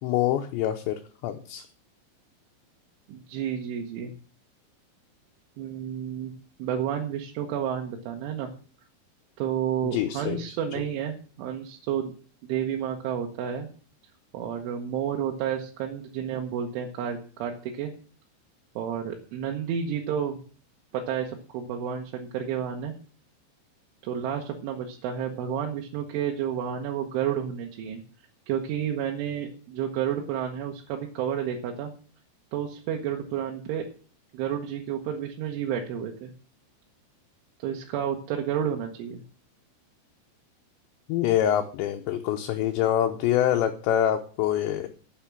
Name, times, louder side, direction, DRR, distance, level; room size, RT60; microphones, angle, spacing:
voice 1, 0.0-1.6 9.8-10.4 41.1-44.9, left 11 dB, 75° left, 5 dB, 2.9 m, -25 dB
voice 2, 3.1-4.1 5.6-6.3 6.6-8.5 9.4-12.1 12.4-13.7 14.3-17.9 18.8-20.4 20.9-22.9 24.0-28.0 28.5-31.9 32.5-33.8 34.3-36.3 37.6-39.2, right 9 dB, 80° right, 2 dB, 3.5 m, -31 dB
10.5 x 7.3 x 7.4 m, 0.41 s
omnidirectional pair, 5.5 m